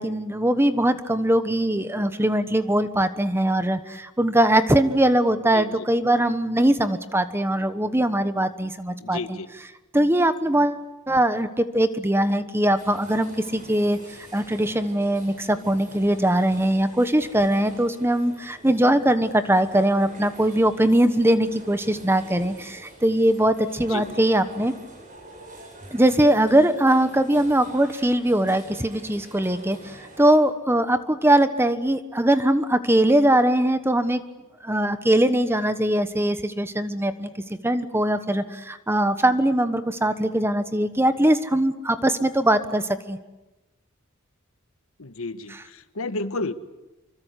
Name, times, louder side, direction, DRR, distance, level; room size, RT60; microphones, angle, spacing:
voice 1, 0.0-9.4 9.9-14.0 14.3-24.7 25.9-34.2 34.6-37.3 37.6-43.2 45.5-45.6, right 1 dB, 10° right, 11 dB, 1.2 m, -21 dB
voice 2, 9.0-9.5 23.9-24.2 45.0-46.5, left 2 dB, 90° left, 11 dB, 1.4 m, -31 dB
sound 1, 12.8-30.4, right 2 dB, 40° right, 7.8 m, -46 dB
26.5 x 24.0 x 8.4 m, 1.1 s
head